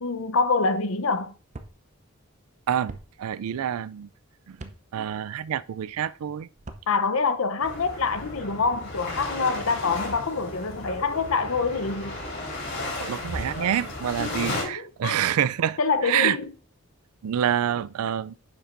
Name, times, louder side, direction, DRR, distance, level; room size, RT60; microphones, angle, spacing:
voice 1, 0.0-1.3 6.9-12.2 14.2-15.2 15.8-16.5, left 4 dB, 70° left, 0.7 m, -26 dB
sound 1, 1.5-1.7 2.9-3.0 4.6-4.8 6.5-6.9, right 2 dB, 30° right, 0.6 m, -40 dB
voice 2, 2.7-4.1 4.5-6.5 13.0-16.4 17.2-18.3, right 9 dB, 85° right, 0.4 m, -27 dB
sound 2, 7.6-14.6, left 2 dB, 50° left, 3.9 m, -34 dB
9.8 x 7.1 x 2.6 m
head